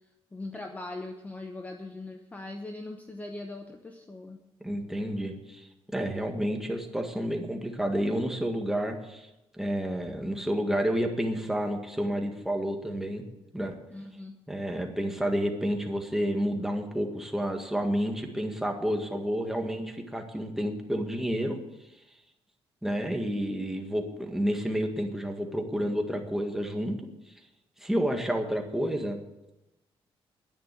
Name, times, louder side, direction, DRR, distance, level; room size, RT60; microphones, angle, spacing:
voice 1, 0.3-4.4 6.0-6.3 13.9-14.4, left 2 dB, 15° left, 4 dB, 0.9 m, -40 dB
voice 2, 4.6-5.7 5.9-13.2 13.5-13.8 14.5-21.6 22.8-27.0 27.8-29.2, equal, 5° right, 3 dB, 1.7 m, -30 dB
10.5 x 10.0 x 8.4 m, 0.95 s
cardioid pair, 135°, 10 cm